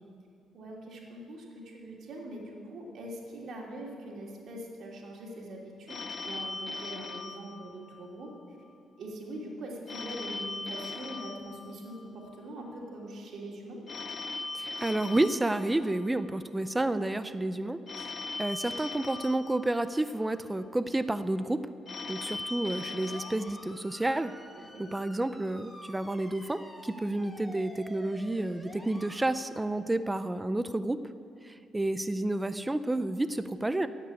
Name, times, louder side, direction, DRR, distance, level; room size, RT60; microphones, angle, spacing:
voice 1, 0.5-8.6 9.0-13.8 24.7-24.8, right 1 dB, 65° right, -2 dB, 2.9 m, -43 dB
Telephone, 5.9-8.4 9.9-12.4 13.9-16.4 17.9-20.3 21.9-24.3, left 3 dB, 40° left, 0.7 m, -40 dB
voice 2, 14.5-21.6 22.1-24.3 24.8-31.0 31.4-33.9, right 2 dB, 15° right, 12 dB, 0.5 m, -30 dB
sound 1, 22.8-29.3, equal, 5° left, 1.7 m, -49 dB
16.5 x 6.0 x 8.3 m, 2.4 s
cardioid pair, 90°, 0 cm